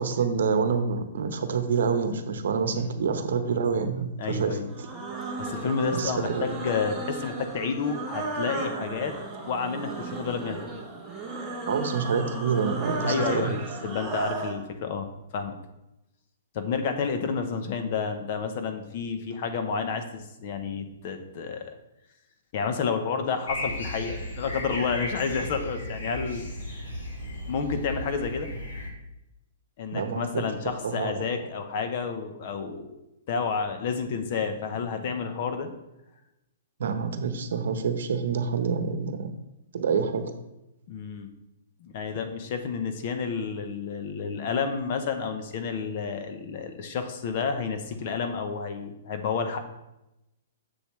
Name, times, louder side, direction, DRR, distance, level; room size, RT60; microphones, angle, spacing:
voice 1, 0.0-4.6 5.9-6.5 11.7-13.5 29.9-30.4 30.8-31.1 36.8-39.3 39.7-40.2, right 5 dB, 70° right, 8 dB, 0.9 m, -27 dB
voice 2, 4.2-4.6 5.4-9.1 9.5-10.6 13.1-15.5 16.5-21.7 22.5-26.4 27.5-28.5 29.8-33.0 33.3-35.7 40.9-41.3 41.8-49.6, left 5 dB, 40° left, 7 dB, 0.8 m, -30 dB
sound 1, 4.7-14.6, right 3 dB, 10° right, 0.9 m, -34 dB
sound 2, 23.5-28.9, left 1 dB, 85° left, 2.3 m, -35 dB
7.1 x 6.9 x 3.2 m, 0.91 s
hypercardioid pair, 165°, 0 cm